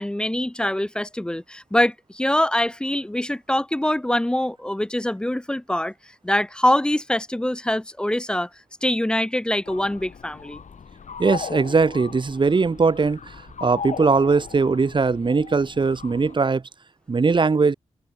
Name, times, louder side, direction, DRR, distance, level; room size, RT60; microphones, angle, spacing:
voice 1, 0.0-5.9 6.2-8.5 8.8-10.6, left 1 dB, 5° left, 0.3 m, -24 dB
sound 1, 9.7-16.4, left 6 dB, 70° left, 1.9 m, -38 dB
voice 2, 11.2-13.2 13.6-16.6 17.1-17.7, right 4 dB, 40° right, 0.7 m, -20 dB
cardioid pair, 45°, 13 cm